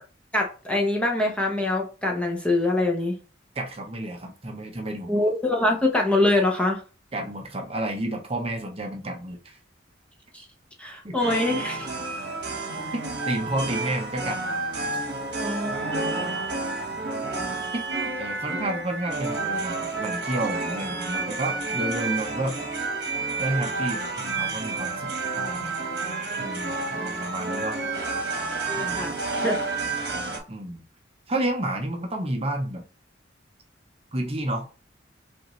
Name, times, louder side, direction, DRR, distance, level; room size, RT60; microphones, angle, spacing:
voice 1, 0.3-3.1 5.1-6.8 10.3-10.4 10.8-11.9 15.4-15.9 28.7-29.2 29.4-29.6, left 2 dB, 5° left, 0 dB, 0.8 m, -24 dB
voice 2, 3.5-5.1 7.1-9.6 11.0-11.2 12.9-14.4 17.7-22.6 23.4-25.7 26.4-27.8 28.7-29.1 30.5-30.8 31.3-32.8 34.1-34.7, right 1 dB, 30° right, 3 dB, 0.7 m, -31 dB
sound 1, 11.2-30.4, right 3 dB, 60° right, 1.2 m, -30 dB
5.7 x 2.5 x 3.1 m, 0.36 s
head